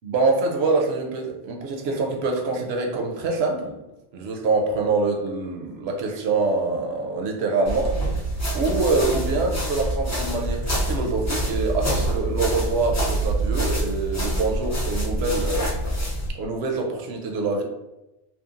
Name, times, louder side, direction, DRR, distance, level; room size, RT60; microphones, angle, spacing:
voice 1, 0.0-3.8 4.1-8.0 8.5-15.7 16.4-17.6, right 3 dB, 80° right, 1 dB, 0.8 m, -25 dB
sound 1, 7.6-16.3, right 1 dB, 25° left, 0.4 m, -26 dB
2.9 x 2.3 x 2.4 m, 0.98 s
omnidirectional pair, 1.1 m